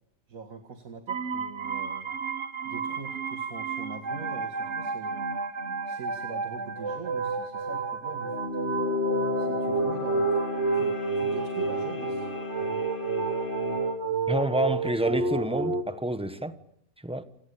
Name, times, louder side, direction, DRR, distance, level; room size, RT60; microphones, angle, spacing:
voice 1, 0.3-2.1 2.6-5.3 5.8-8.6 9.3-10.4 10.7-12.3, right 5 dB, 85° right, 2.4 m, -43 dB
sound 1, 1.1-15.8, right 4 dB, 55° right, 1.6 m, -31 dB
sound 2, 8.2-14.0, left 3 dB, 40° left, 2.4 m, -32 dB
voice 2, 14.3-16.5 17.0-17.2, right 1 dB, 5° right, 1.2 m, -28 dB
28.5 x 18.5 x 8.5 m
omnidirectional pair, 1.4 m